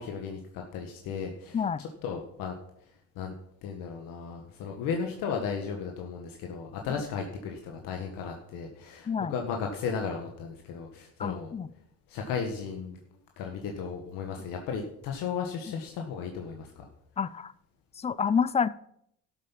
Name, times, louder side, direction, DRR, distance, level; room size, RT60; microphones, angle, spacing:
voice 1, 0.0-2.6 2.8-3.3 3.6-11.5 12.1-13.0 13.4-16.9, left 6 dB, 80° left, 2 dB, 1.6 m, -35 dB
voice 2, 11.2-11.7 17.2-17.5 18.0-18.7, left 6 dB, 20° left, 19 dB, 0.4 m, -28 dB
13.0 x 7.6 x 5.8 m, 0.74 s
cardioid pair, 120°, 33 cm